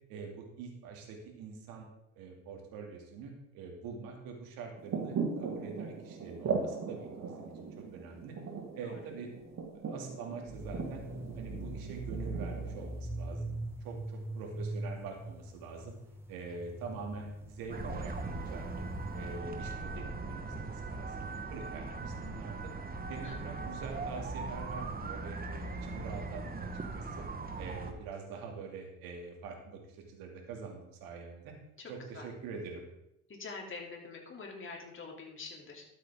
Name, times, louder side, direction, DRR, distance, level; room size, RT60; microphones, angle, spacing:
voice 1, 0.1-1.9 2.2-8.3 8.7-9.3 9.8-11.0 11.3-15.9 16.3-18.8 19.1-21.3 21.5-22.7 23.1-27.2 27.6-31.5 31.9-32.8, right 5 dB, 65° right, 1 dB, 2.7 m, -45 dB
sound 1, 4.8-13.0, right 5 dB, 45° right, 2.1 m, -39 dB
sound 2, 10.5-19.4, right 1 dB, 5° right, 1.9 m, -42 dB
sound 3, 17.7-27.9, right 3 dB, 25° right, 1.5 m, -40 dB
voice 2, 23.2-23.7 31.8-32.3 33.3-35.8, left 4 dB, 35° left, 0 dB, 3.3 m, -46 dB
12.5 x 8.3 x 3.8 m, 0.84 s
hypercardioid pair, 65°, 37 cm